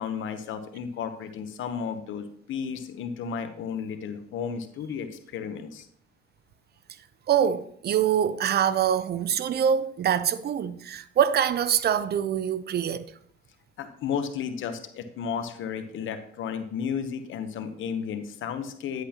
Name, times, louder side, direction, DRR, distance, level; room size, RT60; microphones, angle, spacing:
voice 1, 0.0-5.9 13.8-19.0, left 7 dB, 80° left, 1.0 m, -33 dB
voice 2, 7.3-13.1, right 9 dB, 55° right, 0.6 m, -24 dB
10.0 x 8.0 x 2.9 m
cardioid pair, 90°, 20 cm